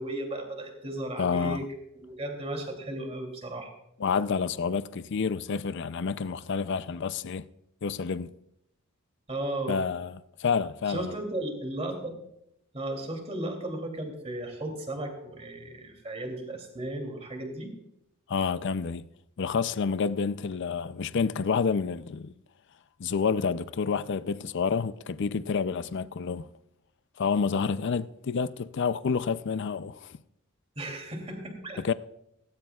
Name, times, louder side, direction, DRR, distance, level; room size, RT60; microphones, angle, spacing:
voice 1, 0.0-1.6 1.9-3.7 9.3-9.8 10.9-12.1 12.7-17.7 30.8-31.8, right 1 dB, 30° right, 2.9 m, -35 dB
voice 2, 1.2-1.7 4.0-7.4 7.8-8.3 9.7-11.1 18.3-19.0 19.4-22.3 23.0-26.5 27.2-30.1 31.8-31.9, left 5 dB, 55° left, 0.5 m, -29 dB
17.5 x 17.5 x 2.4 m
head